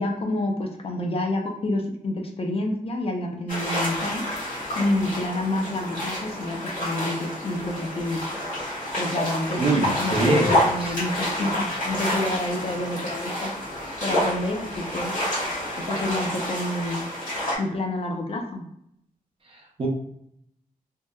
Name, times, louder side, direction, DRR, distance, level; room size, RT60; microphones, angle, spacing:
voice 1, 0.0-8.4 9.0-13.5 14.0-15.1 15.8-17.1 17.6-18.7, left 1 dB, 40° left, 2 dB, 0.4 m, -28 dB
sound 1, 3.5-17.6, equal, 65° left, 1.3 m, -28 dB
voice 2, 9.6-10.5 10.8-10.9 19.5-19.9, right 2 dB, 40° right, 0 dB, 0.5 m, -24 dB
2.8 x 2.1 x 2.2 m, 0.74 s
wide cardioid pair, 145°, 15 cm